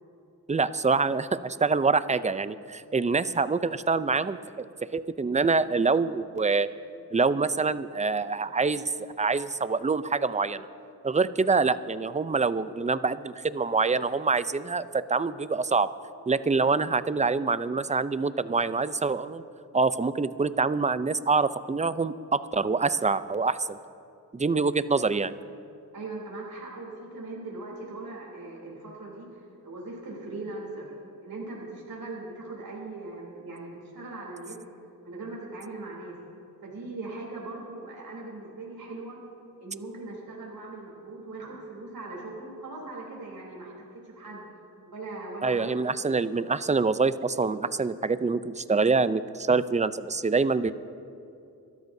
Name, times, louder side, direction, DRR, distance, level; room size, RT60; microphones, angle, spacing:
voice 1, 0.5-6.7 7.1-10.7 11.0-15.9 16.3-19.4 19.7-23.8 24.3-25.3 45.4-50.7, right 4 dB, 20° right, 14 dB, 0.5 m, -25 dB
voice 2, 25.9-30.9 31.2-34.5 35.0-36.1 36.6-39.2 39.6-44.5 44.9-45.7, right 2 dB, 65° right, -4 dB, 3.4 m, -40 dB
26.5 x 13.0 x 2.7 m, 2.6 s
cardioid pair, 55°, 38 cm